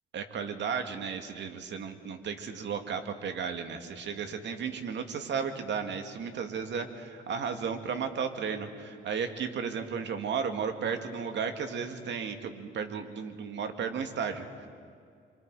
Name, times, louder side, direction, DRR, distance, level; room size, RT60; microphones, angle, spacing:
voice 1, 0.1-14.7, right 6 dB, 65° right, 6 dB, 2.1 m, -34 dB
27.0 x 24.5 x 4.8 m, 2.2 s
cardioid pair, 90°, 20 cm